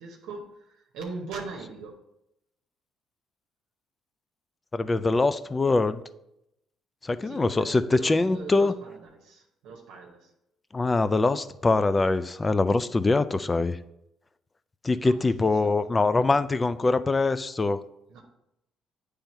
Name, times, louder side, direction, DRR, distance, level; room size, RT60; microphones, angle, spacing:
voice 1, 0.0-2.0 7.2-10.3 15.0-15.3 15.6-15.9 18.1-18.2, right 4 dB, 85° right, 0 dB, 0.9 m, -41 dB
voice 2, 4.7-6.0 7.0-8.8 10.7-13.8 14.8-17.8, left 3 dB, 25° left, 13 dB, 0.4 m, -23 dB
8.9 x 3.5 x 4.3 m, 0.84 s
supercardioid pair, 80°, 0 cm